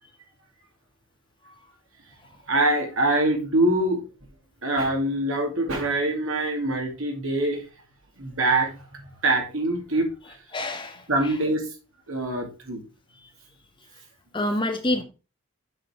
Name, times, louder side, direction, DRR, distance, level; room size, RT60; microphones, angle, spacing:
voice 1, 2.5-4.0 4.6-7.6 8.2-10.4 11.1-11.7 12.1-12.8, right 2 dB, 70° right, 2 dB, 2.4 m, -24 dB
voice 2, 10.5-11.1 14.3-15.0, left 1 dB, 20° left, 5 dB, 1.1 m, -27 dB
7.7 x 5.5 x 4.4 m, 0.32 s
head